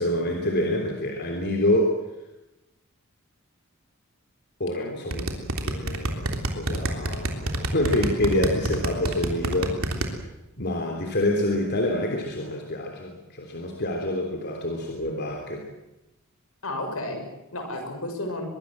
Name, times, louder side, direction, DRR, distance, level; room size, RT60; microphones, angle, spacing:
voice 1, 0.0-2.0 4.6-10.0 10.6-15.6, left 1 dB, 50° left, 2 dB, 3.3 m, -27 dB
sound 1, 5.1-10.1, right 2 dB, 70° right, 3.4 m, -26 dB
voice 2, 16.6-18.5, left 1 dB, 75° left, 4 dB, 6.3 m, -32 dB
23.5 x 22.5 x 7.7 m, 0.95 s
head